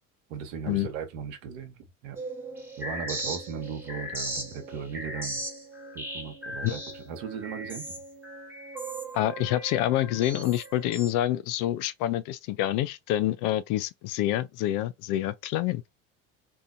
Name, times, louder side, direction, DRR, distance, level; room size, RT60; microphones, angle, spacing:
voice 1, 0.3-1.8 2.0-2.2 2.8-5.4 5.9-7.9, right 7 dB, 70° right, 0.9 m, -37 dB
sound 1, 2.2-11.1, right 1 dB, 5° right, 1.3 m, -38 dB
voice 2, 9.1-15.8, left 13 dB, 55° left, 0.4 m, -27 dB
2.7 x 2.5 x 2.4 m
hypercardioid pair, 65°, 40 cm